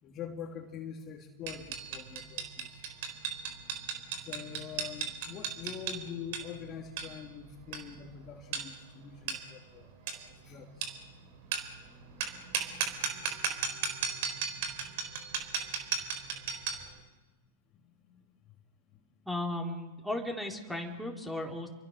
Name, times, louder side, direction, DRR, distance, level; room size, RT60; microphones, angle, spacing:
voice 1, 0.0-2.8 4.2-10.9 16.3-16.5 17.7-18.2, left 8 dB, 35° left, 3 dB, 2.9 m, -45 dB
sound 1, 1.5-16.9, right 6 dB, 55° right, 4.2 m, -36 dB
voice 2, 19.3-21.7, left 1 dB, ahead, 2 dB, 4.1 m, -35 dB
29.5 x 23.5 x 6.8 m, 1.2 s
hypercardioid pair, 105°, 0 cm